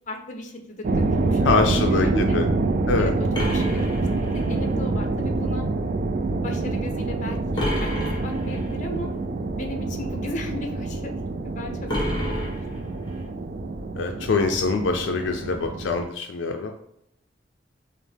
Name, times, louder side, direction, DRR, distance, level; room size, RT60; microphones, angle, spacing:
voice 1, 0.1-2.4 3.0-3.1 3.5-4.1 4.3-5.6 6.4-7.9 8.2-9.1 9.5-11.1 11.6-12.6, left 1 dB, 45° left, 4 dB, 0.6 m, -35 dB
sound 1, 0.8-16.0, right 3 dB, 50° right, 0.3 m, -26 dB
voice 2, 1.4-2.5 2.9-3.1 13.9-16.7, left 4 dB, 80° left, 4 dB, 0.4 m, -24 dB
sound 2, 3.3-4.7 7.6-8.7 11.9-13.2, equal, 25° left, 1.0 m, -29 dB
5.2 x 2.1 x 3.3 m, 0.76 s
head